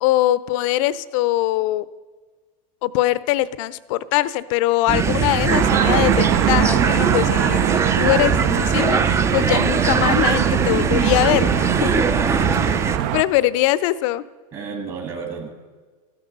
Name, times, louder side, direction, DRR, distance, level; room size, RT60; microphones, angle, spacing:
voice 1, 0.0-1.8 2.8-12.1 13.1-14.2, left 15 dB, 55° left, 18 dB, 0.6 m, -22 dB
sound 1, 4.9-13.0, right 5 dB, 15° right, 0.5 m, -20 dB
sound 2, 5.5-13.2, right 12 dB, 55° right, 0.6 m, -23 dB
voice 2, 12.2-13.1 14.5-15.5, right 5 dB, 30° right, 2 dB, 1.7 m, -31 dB
13.5 x 10.5 x 6.6 m, 1.4 s
supercardioid pair, 140°, 19 cm